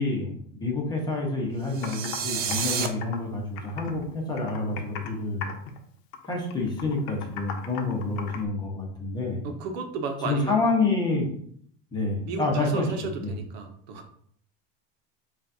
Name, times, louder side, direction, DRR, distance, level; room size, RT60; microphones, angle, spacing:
voice 1, 0.0-5.6 6.2-9.4 10.2-11.2 11.9-13.4, left 3 dB, 15° left, -1 dB, 1.0 m, -28 dB
Computer keyboard, 1.4-1.5 1.8-2.2 2.5-4.0 4.4-5.1 5.4-5.8 6.1-8.5, left 7 dB, 70° left, 0.8 m, -38 dB
sound 1, 1.7-2.9, right 7 dB, 30° right, 0.4 m, -30 dB
voice 2, 9.4-10.6 12.3-14.0, right 4 dB, 70° right, 5 dB, 0.9 m, -33 dB
6.8 x 2.5 x 2.7 m, 0.62 s
cardioid pair, 150°, 32 cm